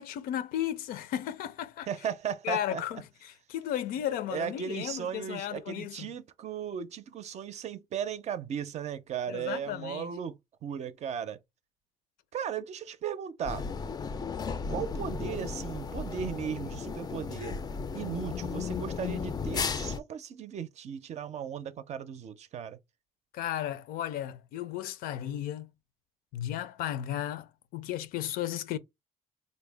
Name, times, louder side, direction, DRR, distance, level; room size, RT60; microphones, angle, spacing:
voice 1, 0.0-1.9 2.4-6.1 9.3-10.1 23.3-25.7 26.3-28.8, left 11 dB, 85° left, 0.5 m, -34 dB
voice 2, 1.9-2.8 4.3-11.4 12.3-13.7 14.7-17.6 17.9-22.8, right 8 dB, 50° right, 0.5 m, -36 dB
sound 1, 13.4-20.0, left 5 dB, 25° left, 0.4 m, -35 dB
3.9 x 2.1 x 3.3 m
cardioid pair, 115°, 15 cm